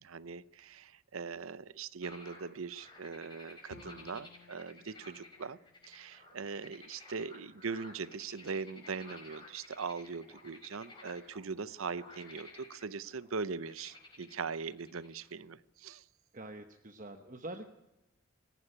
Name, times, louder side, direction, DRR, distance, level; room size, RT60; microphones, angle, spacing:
voice 1, 0.0-5.6 5.9-16.0, right 5 dB, 75° right, 18 dB, 0.7 m, -41 dB
sound 1, 2.0-15.3, left 2 dB, 20° left, 4.7 m, -55 dB
Bowed string instrument, 3.7-6.8, left 2 dB, 75° left, 2.4 m, -58 dB
voice 2, 16.3-17.7, right 1 dB, 35° right, 6 dB, 1.0 m, -45 dB
18.0 x 14.5 x 9.9 m, 0.95 s
head